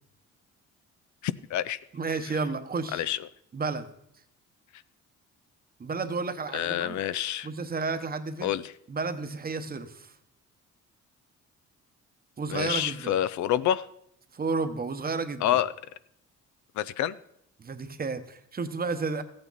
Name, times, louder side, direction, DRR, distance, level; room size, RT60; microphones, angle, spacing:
voice 1, 1.2-1.8 2.3-2.4 2.9-3.2 6.5-7.5 8.4-8.7 12.5-13.9 15.4-15.7 16.8-17.2, left 11 dB, 70° left, 16 dB, 0.5 m, -27 dB
voice 2, 1.9-3.0 3.5-3.9 5.8-7.0 7.4-8.6 8.9-10.1 12.4-13.1 14.3-15.6 17.6-19.2, right 4 dB, 30° right, 9 dB, 1.0 m, -32 dB
14.5 x 8.6 x 4.0 m, 0.74 s
cardioid pair, 90°, 30 cm